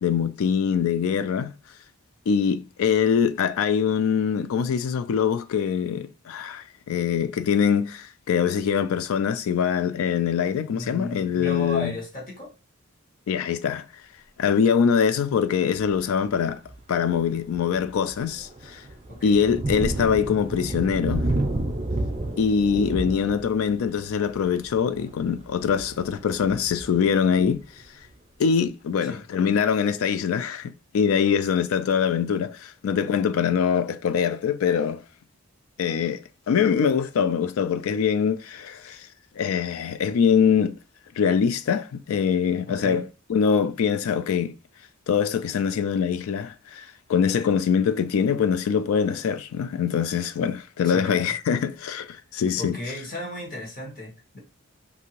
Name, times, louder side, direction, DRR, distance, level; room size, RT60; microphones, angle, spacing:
voice 1, 0.0-1.5 2.3-11.9 13.3-13.9 14.4-16.6 16.9-18.8 19.2-21.3 22.4-27.6 28.4-35.0 35.8-39.1 39.4-40.8 41.2-43.0 43.3-44.5 45.1-52.8, left 7 dB, 75° left, 0.3 m, -23 dB
voice 2, 10.7-12.5 19.1-19.4 29.0-29.2 42.7-43.1 50.8-51.3 52.6-54.4, left 2 dB, 40° left, 1.1 m, -35 dB
Thunder, 15.8-16.1 16.6-16.8 17.2-27.8, right 1 dB, 30° right, 0.5 m, -32 dB
2.8 x 2.6 x 2.8 m
head